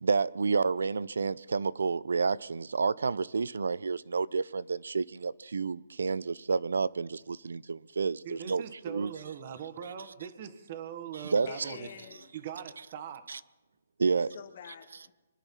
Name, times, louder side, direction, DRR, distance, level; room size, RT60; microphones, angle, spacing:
voice 1, 0.0-9.1 11.2-11.5 13.3-13.4 14.0-14.3, right 4 dB, 90° right, 0.6 m, -30 dB
voice 2, 8.2-11.9 12.3-13.2, right 8 dB, 35° right, 1.4 m, -41 dB
voice 3, 11.4-12.3 14.0-15.1, left 8 dB, 45° left, 2.1 m, -46 dB
24.5 x 10.0 x 5.8 m
hypercardioid pair, 165°, 0 cm